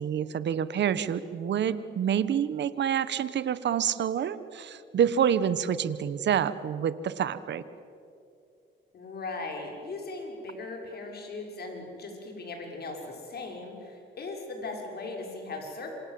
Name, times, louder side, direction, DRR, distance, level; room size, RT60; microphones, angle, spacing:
voice 1, 0.0-7.6, right 8 dB, 65° right, 14 dB, 1.3 m, -27 dB
voice 2, 8.9-15.9, left 3 dB, 55° left, 2 dB, 6.5 m, -38 dB
27.5 x 26.0 x 7.8 m, 2.6 s
cardioid pair, 90°, 20 cm